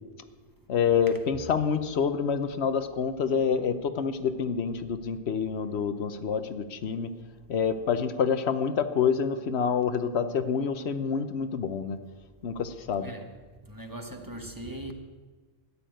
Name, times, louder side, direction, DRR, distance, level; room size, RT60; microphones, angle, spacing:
voice 1, 0.7-7.1 7.5-12.0 12.4-13.1, left 6 dB, 85° left, 1.1 m, -27 dB
voice 2, 13.6-14.9, right 1 dB, 20° right, 1.1 m, -40 dB
13.0 x 7.1 x 9.2 m
omnidirectional pair, 1.1 m